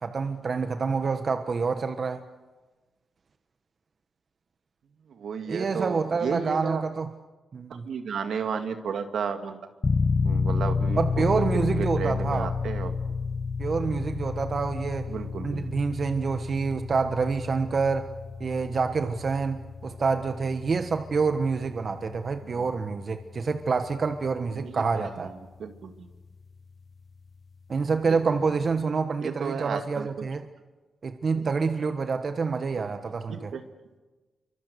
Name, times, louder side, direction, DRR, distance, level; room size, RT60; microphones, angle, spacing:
voice 1, 0.0-2.2 5.5-7.1 7.5-7.9 11.0-12.5 13.6-15.1 15.4-18.1 18.4-25.3 27.7-30.4 31.0-33.5, right 4 dB, 55° right, 8 dB, 1.3 m, -27 dB
voice 2, 5.1-6.8 7.9-9.6 10.2-12.9 15.1-15.6 22.4-22.7 24.5-25.1 25.6-26.1 28.0-28.2 29.2-30.3 31.4-31.5 32.8-32.9 33.3-33.6, right 6 dB, 80° right, 7 dB, 2.0 m, -33 dB
sound 1, 9.8-26.6, left 4 dB, 45° left, 0.9 m, -31 dB
28.5 x 24.0 x 6.9 m, 1.2 s
cardioid pair, 60°, 0 cm